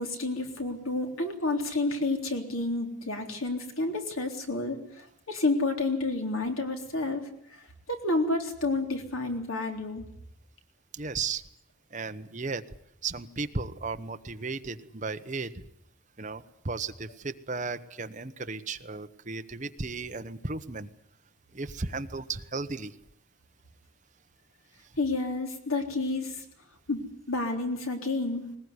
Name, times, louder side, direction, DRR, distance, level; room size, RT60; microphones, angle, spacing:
voice 1, 0.0-7.2 7.5-10.0 25.0-26.4 26.9-28.4, left 2 dB, 90° left, 4 dB, 3.6 m, -30 dB
voice 2, 10.9-11.4 11.9-12.6 13.0-15.7 16.2-20.9 21.5-22.9, right 4 dB, 35° right, 9 dB, 1.1 m, -35 dB
20.5 x 20.5 x 9.7 m, 0.72 s
head